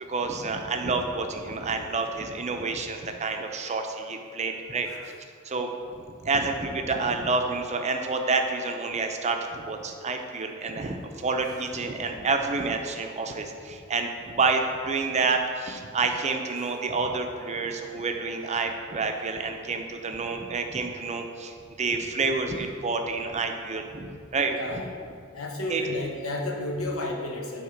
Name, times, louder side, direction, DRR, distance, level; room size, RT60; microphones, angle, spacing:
voice 1, 0.1-4.9 5.4-24.5 25.7-25.8, right 4 dB, 35° right, 4 dB, 0.6 m, -29 dB
voice 2, 4.8-5.2 11.4-11.6 16.6-16.7 24.5-24.9 25.3-27.6, left 1 dB, 85° left, 1 dB, 1.0 m, -32 dB
8.7 x 3.6 x 5.1 m, 2.2 s
head